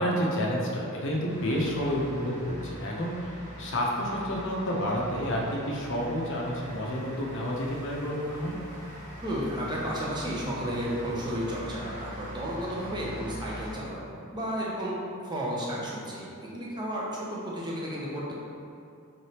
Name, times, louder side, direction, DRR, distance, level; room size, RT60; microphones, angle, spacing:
voice 1, 0.0-8.6, equal, 60° left, -2 dB, 0.6 m, -30 dB
sound 1, 1.3-13.7, equal, 80° right, 1.3 m, -43 dB
voice 2, 9.2-15.0 15.2-18.3, equal, 20° right, -5 dB, 0.6 m, -33 dB
3.9 x 3.2 x 2.8 m, 2.4 s
head